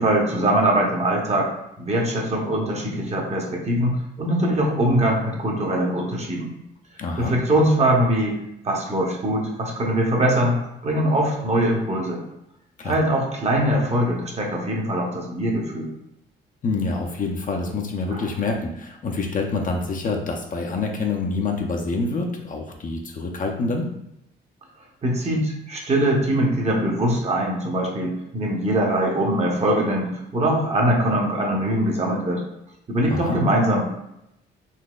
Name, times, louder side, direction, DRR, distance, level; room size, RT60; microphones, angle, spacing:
voice 1, 0.0-1.5 1.8-6.5 7.2-8.4 8.6-12.2 12.8-15.9 18.1-18.2 25.0-32.4 32.9-33.9, right 1 dB, 35° right, -1 dB, 0.9 m, -22 dB
voice 2, 7.0-7.3 12.8-13.0 16.6-23.9 33.1-33.4, left 3 dB, 40° left, 1 dB, 0.6 m, -26 dB
4.0 x 2.8 x 2.3 m, 0.82 s
cardioid pair, 90°, 20 cm